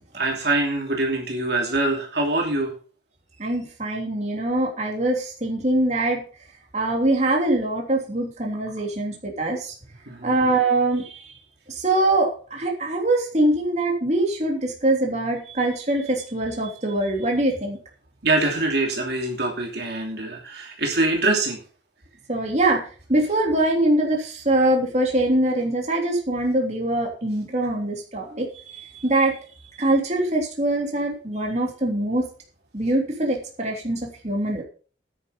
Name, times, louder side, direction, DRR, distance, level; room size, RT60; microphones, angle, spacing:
voice 1, 0.1-2.7 10.1-10.3 18.2-21.6, right 2 dB, 55° right, 0 dB, 2.9 m, -24 dB
voice 2, 3.4-6.2 6.7-9.7 10.2-11.2 11.7-17.8 22.3-22.8 23.1-28.5 28.7-29.3 29.8-32.2 32.7-34.6, right 1 dB, 35° right, 0 dB, 3.2 m, -23 dB
10.5 x 9.3 x 5.6 m, 0.39 s
head